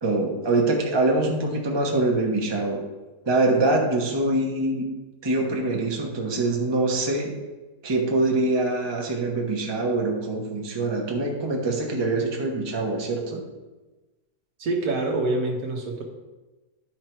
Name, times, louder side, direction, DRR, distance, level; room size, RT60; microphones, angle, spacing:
voice 1, 0.0-2.8 3.3-4.9 5.2-7.3 7.8-13.4, right 2 dB, 20° right, 0 dB, 0.9 m, -24 dB
voice 2, 14.6-16.1, right 2 dB, 70° right, 1 dB, 1.5 m, -26 dB
10.5 x 4.6 x 4.5 m, 1.2 s
omnidirectional pair, 1.8 m